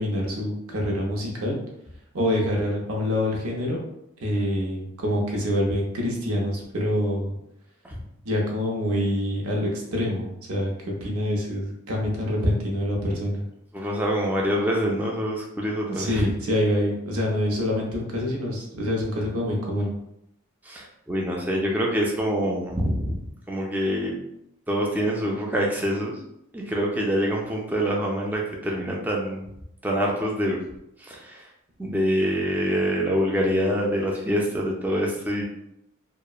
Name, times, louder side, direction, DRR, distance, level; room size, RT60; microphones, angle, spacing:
voice 1, 0.0-1.6 2.1-3.8 4.2-7.3 8.2-13.4 16.0-19.9, left 1 dB, 80° right, -1 dB, 0.7 m, -26 dB
voice 2, 13.7-16.3 20.6-23.2 23.5-24.2 24.7-26.2 26.5-29.4 29.8-30.6 31.0-31.5 31.8-35.4, equal, 10° right, -2 dB, 0.4 m, -25 dB
2.8 x 2.1 x 2.3 m, 0.80 s
head